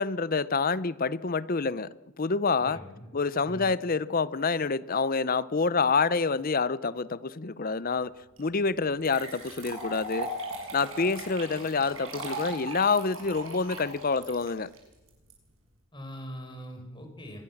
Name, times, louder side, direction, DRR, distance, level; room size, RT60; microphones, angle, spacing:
voice 1, 0.0-2.8 3.1-8.1 8.4-10.3 10.7-14.7, left 4 dB, 40° left, 0.7 m, -27 dB
voice 2, 2.6-3.1 3.5-3.7 15.9-17.4, equal, 20° left, 4.8 m, -42 dB
sound 1, 8.4-8.5 9.0-15.3, right 1 dB, 65° right, 7.2 m, -38 dB
24.5 x 21.0 x 7.2 m
head